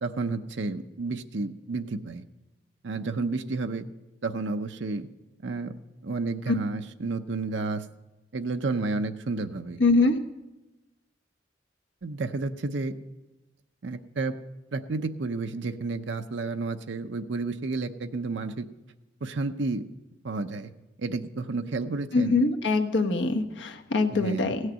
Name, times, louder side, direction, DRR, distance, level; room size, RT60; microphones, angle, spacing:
voice 1, 0.0-2.2 2.8-3.8 4.2-5.1 5.4-5.7 6.0-7.9 8.3-9.8 12.0-12.9 13.8-14.3 14.7-18.7 19.2-19.8 20.2-20.7 21.0-22.4 24.1-24.5, right 3 dB, 75° right, 7 dB, 0.7 m, -31 dB
voice 2, 9.8-10.2 22.1-24.6, left 3 dB, 80° left, 4 dB, 1.2 m, -23 dB
16.0 x 6.5 x 9.0 m, 1.0 s
head